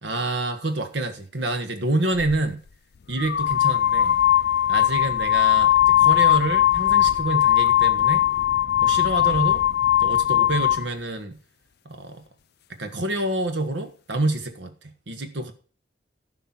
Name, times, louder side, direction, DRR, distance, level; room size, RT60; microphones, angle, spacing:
voice 1, 0.0-2.6 3.1-4.1 4.7-8.3 8.8-9.6 10.0-11.4 11.8-12.2 12.8-15.5, right 2 dB, 70° right, 1.5 m, -27 dB
sound 1, 2.2-2.4 3.2-10.9, left 11 dB, 60° left, 0.4 m, -19 dB
11.5 x 6.1 x 6.0 m
head